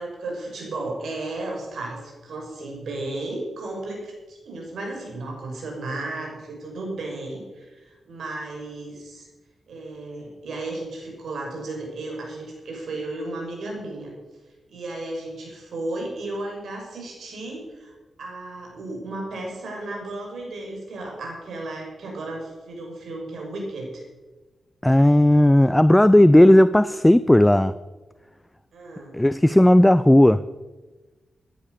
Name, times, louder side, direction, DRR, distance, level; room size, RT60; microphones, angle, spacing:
voice 1, 0.0-9.3 9.7-14.1 14.7-24.0 28.7-29.2, right 2 dB, 75° right, 0 dB, 6.3 m, -34 dB
voice 2, 24.8-27.7 29.1-30.4, left 1 dB, 10° left, 14 dB, 0.4 m, -15 dB
16.0 x 10.5 x 6.7 m, 1.2 s
cardioid pair, 100°, 0 cm